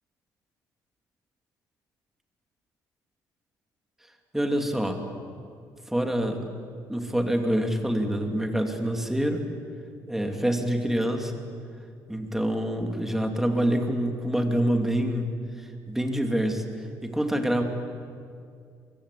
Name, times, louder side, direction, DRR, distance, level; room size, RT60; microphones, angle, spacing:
voice 1, 4.3-5.0 5.9-6.4 6.9-9.4 10.1-11.3 12.1-15.3 15.6-16.6 17.0-17.6, equal, 5° right, 4 dB, 2.6 m, -26 dB
24.5 x 22.5 x 8.5 m, 2.3 s
cardioid pair, 130°, 7 cm